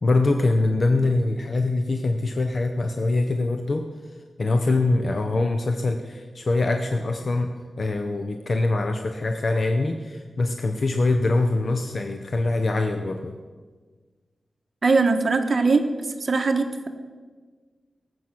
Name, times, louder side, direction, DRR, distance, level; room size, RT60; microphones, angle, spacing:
voice 1, 0.0-3.9 4.4-13.3, left 2 dB, 50° left, 5 dB, 0.8 m, -23 dB
voice 2, 14.8-16.9, right 4 dB, 45° right, 6 dB, 1.2 m, -21 dB
18.5 x 7.9 x 6.0 m, 1.5 s
wide cardioid pair, 120°, 0 cm